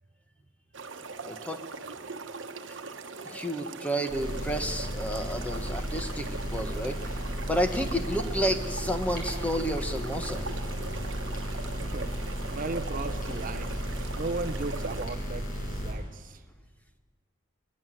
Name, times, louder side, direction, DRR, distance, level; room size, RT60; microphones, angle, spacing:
sound 1, 0.7-15.1, right 4 dB, 70° right, 1.2 m, -41 dB
voice 1, 1.2-1.6 2.7-2.8 3.2-7.2 7.5-10.6, equal, 5° left, 6 dB, 1.4 m, -31 dB
sound 2, 4.1-15.9, equal, 45° left, 5.9 m, -34 dB
voice 2, 12.5-13.7 14.2-16.4, right 3 dB, 45° right, 7 dB, 0.8 m, -36 dB
21.0 x 20.5 x 7.7 m, 1.5 s
head